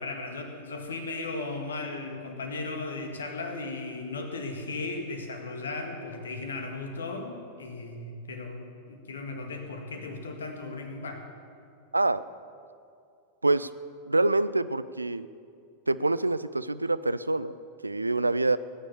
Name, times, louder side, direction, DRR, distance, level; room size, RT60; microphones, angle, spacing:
voice 1, 0.0-11.2, left 3 dB, 70° left, 4 dB, 1.8 m, -36 dB
voice 2, 14.0-15.3 15.9-17.6 17.8-18.6, right 2 dB, 80° right, 16 dB, 0.4 m, -26 dB
18.0 x 9.9 x 7.0 m, 2.4 s
figure-of-eight pair, 90°, 0 cm